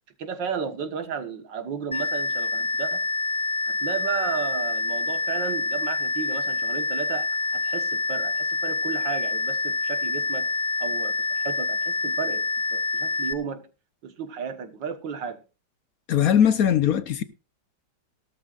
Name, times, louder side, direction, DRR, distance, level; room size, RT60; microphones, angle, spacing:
voice 1, 0.2-3.0 3.7-10.5 10.8-13.6 14.0-15.4, right 7 dB, 85° right, 2.1 m, -33 dB
sound 1, 1.9-13.3, left 3 dB, 10° left, 0.4 m, -27 dB
voice 2, 16.1-17.2, left 9 dB, 60° left, 1.1 m, -20 dB
18.0 x 12.5 x 2.5 m
omnidirectional pair, 1.9 m